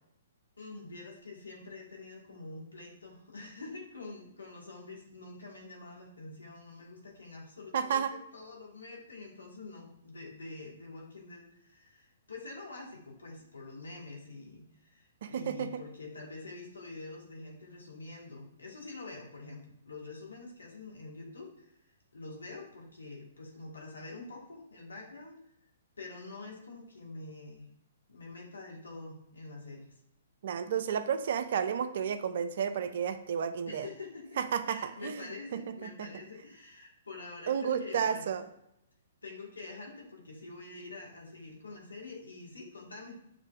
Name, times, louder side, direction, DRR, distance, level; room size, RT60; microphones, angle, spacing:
voice 1, 0.6-21.7 22.1-25.4 26.0-27.7 28.1-29.9 33.7-34.3 34.6-38.3 39.2-43.2, left 3 dB, 80° left, -1 dB, 1.5 m, -46 dB
voice 2, 7.7-8.1 15.2-15.8 30.4-33.9 34.4-36.1 37.5-38.5, right 7 dB, 55° right, 11 dB, 0.4 m, -32 dB
6.5 x 3.2 x 2.4 m, 0.79 s
figure-of-eight pair, 120°, 0 cm